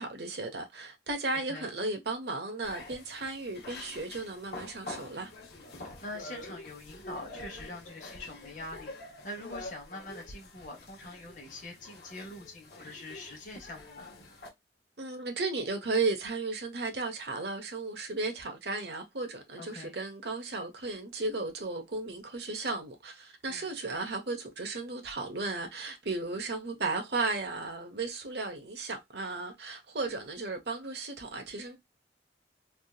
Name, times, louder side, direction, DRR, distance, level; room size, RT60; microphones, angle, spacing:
voice 1, 0.0-5.3 15.0-31.8, right 3 dB, 65° right, 0.9 m, -35 dB
sound 1, 2.6-14.5, left 2 dB, 60° left, 1.0 m, -46 dB
voice 2, 5.8-14.1 19.6-20.0 23.5-23.7, left 2 dB, 45° left, 1.1 m, -44 dB
3.5 x 2.8 x 2.3 m
head